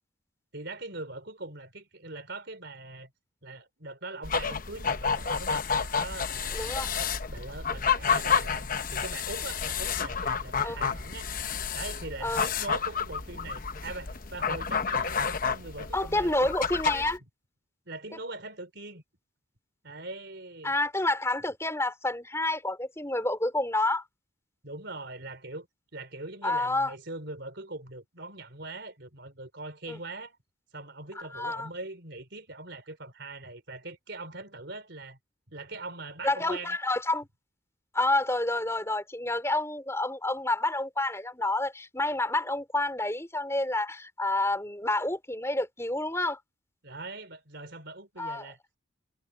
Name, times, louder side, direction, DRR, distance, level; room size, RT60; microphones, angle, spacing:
voice 1, 0.5-3.1 3.4-6.7 7.3-11.3 11.7-16.7 17.9-19.0 19.8-20.7 24.6-25.7 25.9-30.4 30.7-35.2 35.5-36.8 46.8-48.8, right 2 dB, 55° right, 4.5 m, -41 dB
sound 1, 4.2-17.2, left 6 dB, 45° left, 0.9 m, -30 dB
voice 2, 6.5-6.9 10.6-10.8 12.2-12.4 15.9-17.2 20.6-24.0 26.4-26.9 29.9-30.0 31.3-31.7 36.2-37.3 37.9-46.4 48.2-48.5, left 2 dB, 15° left, 4.9 m, -29 dB
head